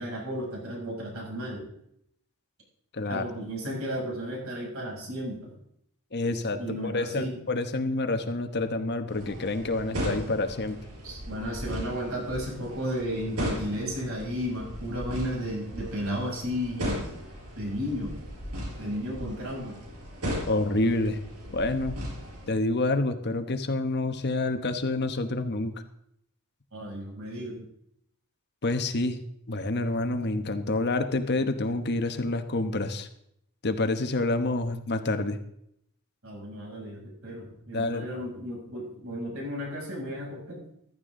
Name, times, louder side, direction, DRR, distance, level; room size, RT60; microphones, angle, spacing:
voice 1, 0.0-1.7 3.1-5.5 6.2-7.4 11.0-17.0 17.6-18.2 18.8-19.7 26.7-27.6 36.2-40.6, equal, 70° right, -2 dB, 6.8 m, -34 dB
voice 2, 2.9-3.2 6.1-10.8 20.5-21.2 21.5-22.0 22.5-25.8 28.6-29.2 29.5-33.1 33.6-35.4 37.7-38.3, left 2 dB, 50° left, 8 dB, 1.1 m, -28 dB
sound 1, 9.1-22.5, equal, 85° right, 4.9 m, -37 dB
15.0 x 13.5 x 3.8 m, 0.73 s
head